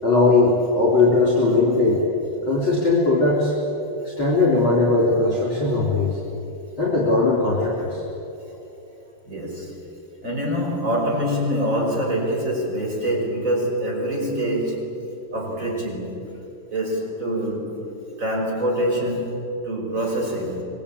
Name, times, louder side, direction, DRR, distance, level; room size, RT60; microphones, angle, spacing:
voice 1, 0.0-2.1 2.5-3.5 4.0-6.2 6.8-8.0, left 3 dB, 25° left, -3 dB, 4.4 m, -19 dB
voice 2, 9.3-9.8 10.2-14.9 15.3-16.2 16.7-17.9 18.2-20.6, equal, 15° right, 0 dB, 5.2 m, -25 dB
25.5 x 24.0 x 8.8 m, 2.9 s
omnidirectional pair, 5.4 m